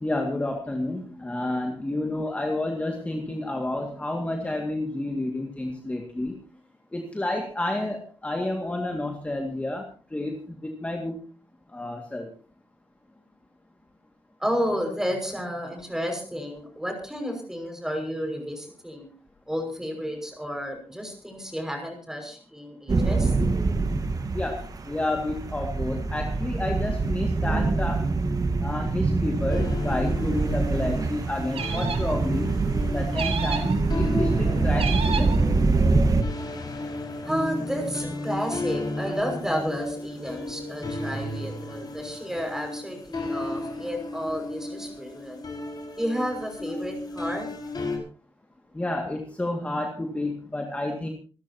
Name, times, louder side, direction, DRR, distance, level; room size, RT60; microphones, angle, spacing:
voice 1, 0.0-6.3 6.9-9.9 10.1-11.2 11.7-12.3 24.3-28.0 28.6-32.5 32.9-35.3 48.7-51.1, left 1 dB, 15° left, 2 dB, 2.1 m, -30 dB
voice 2, 14.4-19.1 19.5-23.3 37.2-45.4 46.0-47.5, equal, 5° right, 3 dB, 5.8 m, -31 dB
sound 1, 22.9-36.2, right 3 dB, 35° right, 1.5 m, -25 dB
sound 2, 29.5-48.0, left 2 dB, 45° left, 5.1 m, -34 dB
sound 3, 31.5-32.2 33.1-33.8 34.7-35.4, right 6 dB, 80° right, 2.9 m, -31 dB
27.5 x 13.0 x 2.9 m, 0.39 s
wide cardioid pair, 150°, 10 cm